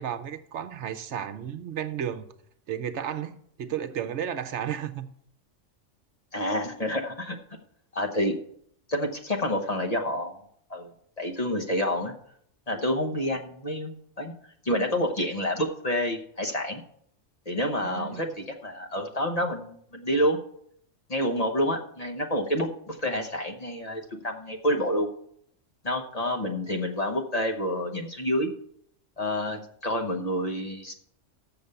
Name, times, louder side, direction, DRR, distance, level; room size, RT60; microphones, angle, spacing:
voice 1, 0.0-2.2 2.7-5.1 17.8-18.2, right 9 dB, 70° right, 1.0 m, -33 dB
voice 2, 6.3-7.4 7.9-8.4 8.9-10.4 10.7-10.9 11.2-12.1 12.7-16.8 17.5-20.4 21.1-25.1 25.8-28.5 29.2-30.9, equal, 35° left, 1.0 m, -28 dB
7.0 x 6.9 x 6.5 m
omnidirectional pair, 1.3 m